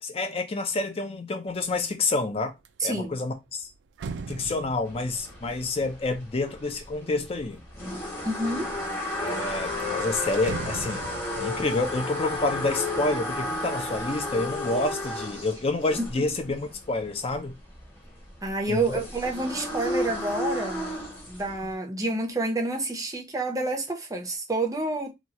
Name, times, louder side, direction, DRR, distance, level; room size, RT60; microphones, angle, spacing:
voice 1, 0.0-2.5 2.8-3.7 4.3-7.6 9.2-17.6 18.7-19.0 21.6-21.7, left 2 dB, 35° left, 0.5 m, -28 dB
sound 1, 1.6-1.9 2.3-7.6 8.3-8.9 9.3-9.4 9.7-13.6 14.0-14.6, right 4 dB, 75° right, 0.3 m, -42 dB
voice 2, 2.8-3.2 8.2-8.7 16.0-16.3 18.4-20.9 21.3-25.1, right 2 dB, 20° right, 0.6 m, -29 dB
sound 2, 4.9-21.7, left 1 dB, 15° left, 1.0 m, -33 dB
2.9 x 2.3 x 2.8 m
head